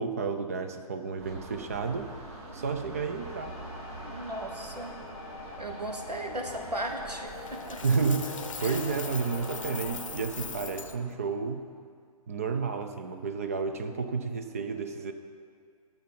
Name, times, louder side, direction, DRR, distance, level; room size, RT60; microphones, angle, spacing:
voice 1, 0.0-2.1 2.5-3.6 7.8-11.6 12.3-15.1, right 5 dB, 25° right, 7 dB, 0.4 m, -31 dB
sound 1, 1.2-11.0, right 2 dB, 40° right, 2.7 m, -44 dB
sound 2, 3.2-10.0, left 5 dB, 20° left, 0.8 m, -44 dB
voice 2, 4.0-4.9 5.6-7.8 8.6-8.8, right 1 dB, 90° right, 4 dB, 1.2 m, -37 dB
Coin (dropping), 7.5-11.0, left 6 dB, 55° left, 0.7 m, -41 dB
10.0 x 7.0 x 5.6 m, 2.1 s
figure-of-eight pair, 135°, 20 cm